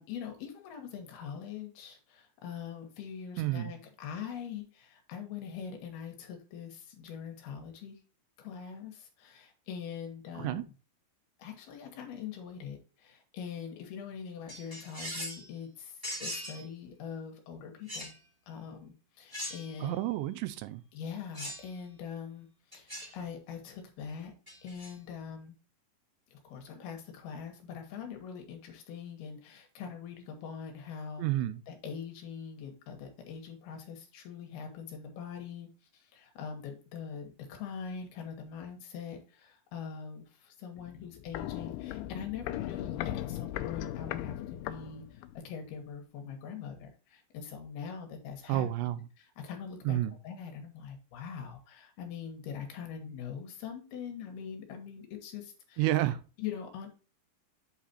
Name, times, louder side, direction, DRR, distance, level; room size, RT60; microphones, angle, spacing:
voice 1, 0.0-8.0 8.4-10.6 11.4-18.1 18.5-20.0 20.9-24.3 24.6-25.6 26.3-31.3 31.7-50.0 50.2-55.8 56.4-56.9, left 7 dB, 70° left, 2.9 m, -43 dB
voice 2, 3.4-3.7 10.4-10.6 19.8-20.8 31.2-31.6 48.5-49.1 49.8-50.2 55.8-56.2, right 14 dB, 90° right, 2.9 m, -30 dB
sound 1, 14.5-15.5 16.0-16.6 17.9-18.2 19.3-19.8 21.3-21.7 22.7-23.1 24.5-24.9, equal, 10° right, 1.6 m, -40 dB
Walk footsteps, 40.8-45.5 45.7-45.8, left 13 dB, 85° left, 2.3 m, -38 dB
8.4 x 4.1 x 4.1 m
omnidirectional pair, 5.1 m